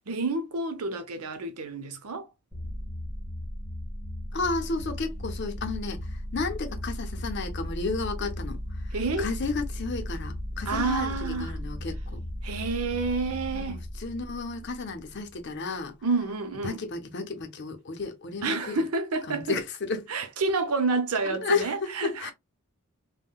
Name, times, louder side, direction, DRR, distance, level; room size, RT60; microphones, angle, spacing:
voice 1, 0.1-2.3 8.9-9.3 10.7-11.6 12.4-13.8 16.0-16.8 18.4-19.6 20.1-22.3, right 3 dB, 80° right, 0.7 m, -29 dB
sound 1, 2.5-15.4, left 1 dB, ahead, 1.2 m, -36 dB
voice 2, 4.3-8.6 8.9-12.2 13.5-15.9 16.6-18.8 19.3-20.1 21.2-22.3, left 4 dB, 50° left, 0.6 m, -33 dB
3.6 x 2.2 x 2.2 m
head